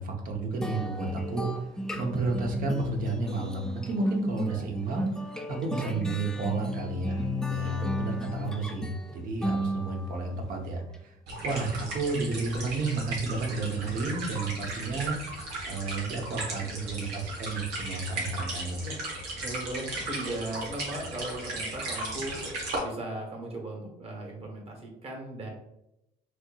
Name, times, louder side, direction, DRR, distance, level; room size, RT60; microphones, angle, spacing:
voice 1, 0.0-1.5 1.9-5.1 5.5-11.1 11.4-15.1 15.7-18.8, right 3 dB, 55° right, 2 dB, 0.8 m, -32 dB
sound 1, 0.6-10.3, left 1 dB, 5° left, 0.3 m, -33 dB
sound 2, 11.3-22.8, right 2 dB, 90° right, 1.3 m, -36 dB
voice 2, 19.4-22.4 22.8-25.5, right 1 dB, 35° right, 1 dB, 1.2 m, -37 dB
4.3 x 2.9 x 2.3 m, 0.85 s
cardioid pair, 110°, 17 cm